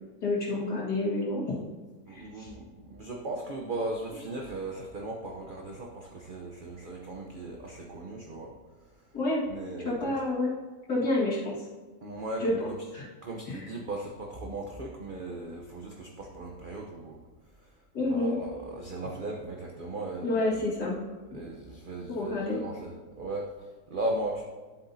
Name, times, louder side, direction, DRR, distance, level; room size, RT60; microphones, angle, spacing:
voice 1, 0.2-1.6 2.1-2.5 9.1-9.4 9.9-10.5 10.9-11.5 12.4-12.7 12.9-13.1 13.5-13.7 17.9-18.3 20.2-20.9 22.1-22.6, left 2 dB, 90° left, -6 dB, 2.5 m, -29 dB
voice 2, 2.1-8.5 9.5-10.1 12.0-12.8 13.2-17.2 17.6-17.7 18.1-20.4 21.3-24.4, right 2 dB, 40° right, 0 dB, 0.8 m, -37 dB
11.0 x 7.8 x 2.7 m, 1.3 s
omnidirectional pair, 1.7 m